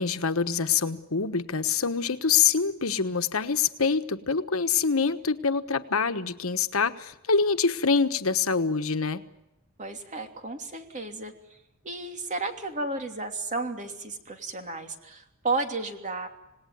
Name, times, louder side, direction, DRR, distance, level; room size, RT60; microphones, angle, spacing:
voice 1, 0.0-9.2, left 5 dB, 80° left, 10 dB, 1.3 m, -25 dB
voice 2, 9.8-11.3 11.8-16.3, right 3 dB, 35° right, 5 dB, 3.0 m, -33 dB
27.5 x 19.0 x 9.4 m, 0.92 s
head